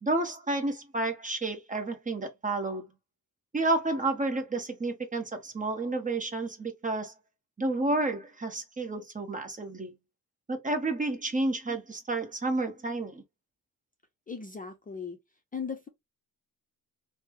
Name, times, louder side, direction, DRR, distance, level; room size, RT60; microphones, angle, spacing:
voice 1, 0.0-2.8 3.5-7.1 7.6-9.9 10.5-13.2, right 2 dB, 20° right, 0.9 m, -30 dB
voice 2, 14.3-15.2 15.5-15.9, left 6 dB, 25° left, 0.5 m, -37 dB
3.2 x 2.1 x 3.1 m
cardioid pair, 110°, 36 cm